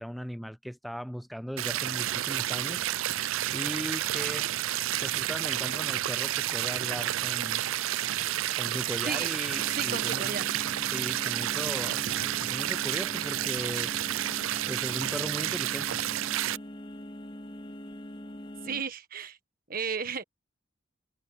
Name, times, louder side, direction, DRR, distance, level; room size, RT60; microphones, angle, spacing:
voice 1, 0.0-2.8 3.5-4.5 5.0-7.6 8.6-10.4 10.9-12.1 12.4-13.9 14.7-16.0, equal, ahead, 0.3 m, -38 dB
sound 1, 1.6-16.6, right 13 dB, 90° right, 0.4 m, -30 dB
sound 2, 9.5-18.8, equal, 25° left, 2.7 m, -43 dB
voice 2, 9.7-10.5 18.6-19.4 19.7-20.2, right 5 dB, 45° right, 1.6 m, -34 dB
head